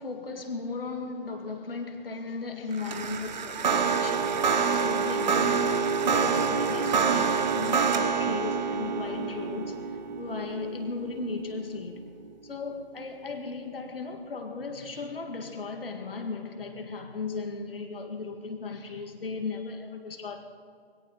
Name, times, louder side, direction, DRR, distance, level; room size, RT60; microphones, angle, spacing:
voice 1, 0.0-4.5 4.7-5.7 6.0-12.0 12.4-20.4, left 4 dB, 60° left, 5 dB, 2.0 m, -36 dB
sound 1, 2.7-12.1, right 6 dB, 45° right, 1.3 m, -27 dB
20.5 x 17.5 x 4.0 m, 2.2 s
figure-of-eight pair, 135°, 32 cm